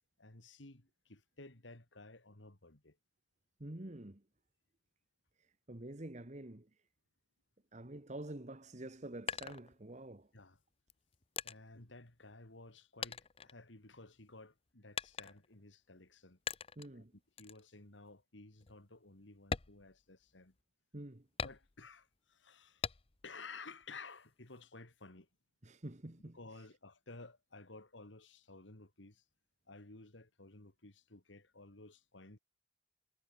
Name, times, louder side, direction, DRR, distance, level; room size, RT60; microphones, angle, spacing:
voice 1, 0.2-3.0 10.3-10.6 11.4-16.4 16.9-17.0 17.4-20.5 21.4-22.9 23.2-25.3 26.3-29.2 29.7-32.4, left 3 dB, 85° left, 2.9 m, -54 dB
voice 2, 3.6-4.2 5.7-6.7 7.7-10.3 16.8-17.1 20.9-21.3 25.6-26.4, right 1 dB, 40° right, 1.4 m, -47 dB
sound 1, 8.7-10.2 10.9-12.7 13.0-14.2 14.9-15.6 16.5-16.9 17.4-17.6 18.1-18.2 18.6-18.8 19.4-20.6 21.4-22.0 22.8-23.4 23.8-24.6, left 6 dB, 30° left, 0.7 m, -43 dB
head